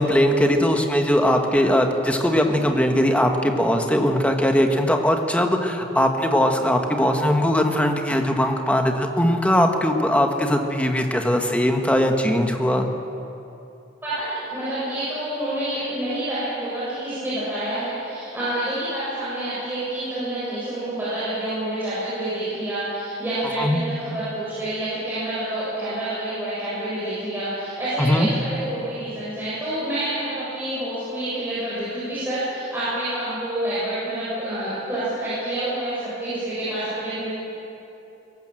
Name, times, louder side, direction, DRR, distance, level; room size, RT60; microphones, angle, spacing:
voice 1, 0.0-12.9 23.6-23.8 28.0-28.3, equal, 5° left, 3 dB, 1.6 m, -20 dB
voice 2, 14.0-37.3, right 1 dB, 10° right, -12 dB, 7.3 m, -28 dB
22.0 x 18.0 x 7.8 m, 2.9 s
head